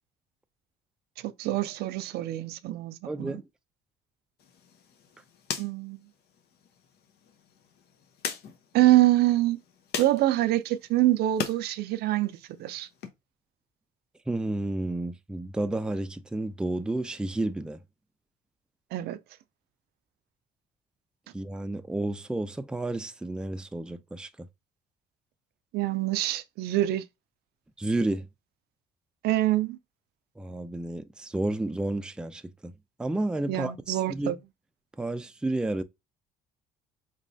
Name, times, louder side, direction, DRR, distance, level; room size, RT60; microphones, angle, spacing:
voice 1, 1.2-3.3 5.6-6.0 8.7-9.6 10.0-12.3 12.6-12.9 18.9-19.2 25.7-27.0 29.2-29.8 33.5-34.4, right 15 dB, 75° right, 0.4 m, -25 dB
voice 2, 3.1-3.4 14.3-17.8 21.3-24.5 27.8-28.3 30.4-32.7 33.0-34.3 35.0-35.8, right 2 dB, 5° right, 0.4 m, -31 dB
sound 1, 4.4-11.6 12.0-13.1, left 7 dB, 70° left, 0.8 m, -40 dB
4.5 x 3.0 x 2.7 m
cardioid pair, 110°, 17 cm